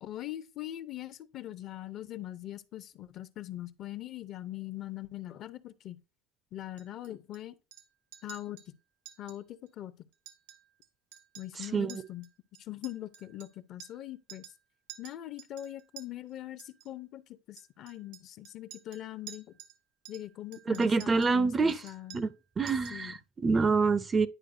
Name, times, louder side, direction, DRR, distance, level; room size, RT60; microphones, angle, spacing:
voice 1, 0.0-6.0 6.5-7.5 8.2-8.6 9.2-9.9 11.4-12.3 12.7-14.4 15.0-17.2 17.5-19.5 20.1-22.2 22.9-23.1, left 14 dB, 45° left, 0.6 m, -42 dB
Chink clink, 6.8-7.4 7.7-7.9 8.1-8.7 9.1-9.4 9.7-9.8 10.1-10.9 11.1-14.0 14.3-14.6 14.9-16.1 16.6-16.9 17.6-19.8 20.0-21.4 21.7-22.4 22.7-23.1, right 11 dB, 75° right, 0.8 m, -51 dB
voice 2, 11.6-12.0 20.7-21.8 22.1-24.3, right 4 dB, 20° right, 0.4 m, -27 dB
10.0 x 4.8 x 2.6 m
supercardioid pair, 120°, 0 cm